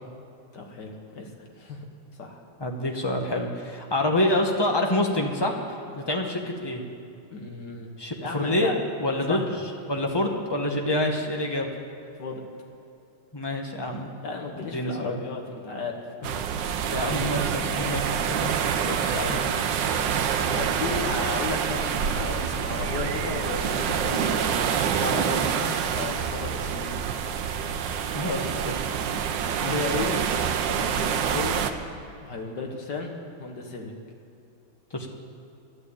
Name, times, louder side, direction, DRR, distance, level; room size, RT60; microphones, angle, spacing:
voice 1, 0.5-1.3 1.6-1.9 2.2-2.4 7.3-7.9 8.2-8.8 9.3-9.4 12.2-12.4 14.2-16.8 19.0-19.5 20.4-24.7 24.9-27.0 28.3-28.7 29.7-30.2 30.6-31.7 32.2-33.9, left 3 dB, 55° left, 2 dB, 2.0 m, -34 dB
voice 2, 2.6-6.8 8.0-8.7 9.0-9.6 9.9-11.7 13.3-14.1 14.6-15.2 16.9-18.0 18.3-18.6 18.9-19.4 28.1-28.8 29.6-29.7 34.9-35.1, left 1 dB, 15° left, 2 dB, 1.0 m, -27 dB
sound 1, 16.2-31.7, right 7 dB, 65° right, 1.3 m, -27 dB
12.0 x 11.0 x 8.5 m, 2.7 s
omnidirectional pair, 2.3 m